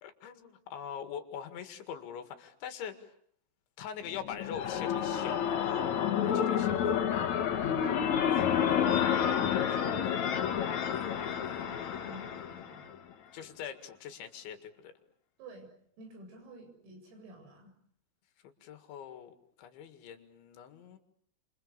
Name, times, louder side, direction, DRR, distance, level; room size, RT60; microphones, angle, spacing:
voice 1, 0.0-3.1 3.8-7.4 13.3-14.9 18.4-21.0, left 8 dB, 65° left, 8 dB, 4.1 m, -43 dB
sound 1, 4.1-12.9, left 8 dB, 85° left, 1.6 m, -29 dB
voice 2, 7.4-10.8 11.2-13.0 15.4-15.7 16.0-17.7, right 2 dB, 80° right, 4 dB, 10.5 m, -51 dB
29.5 x 28.0 x 6.8 m, 0.66 s
omnidirectional pair, 6.0 m